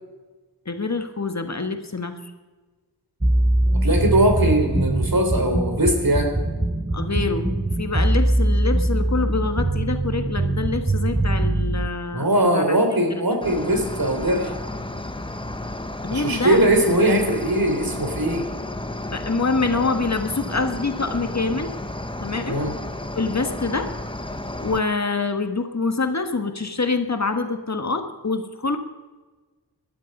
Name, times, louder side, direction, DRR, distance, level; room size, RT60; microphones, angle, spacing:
voice 1, 0.6-2.2 6.9-12.3 12.5-12.8 13.1-13.2 16.0-16.8 19.1-21.7 22.2-22.6 23.2-23.9 24.6-28.8, left 3 dB, 40° left, 6 dB, 1.5 m, -25 dB
sound 1, 3.2-11.9, right 1 dB, 10° right, 0.8 m, -22 dB
voice 2, 3.7-6.3 12.1-14.5 16.1-18.4 22.4-22.7, right 1 dB, 55° right, 4 dB, 3.5 m, -20 dB
Cricket, 13.4-24.8, left 1 dB, 10° left, 1.1 m, -32 dB
19.5 x 12.5 x 5.4 m, 1.3 s
wide cardioid pair, 75°, 42 cm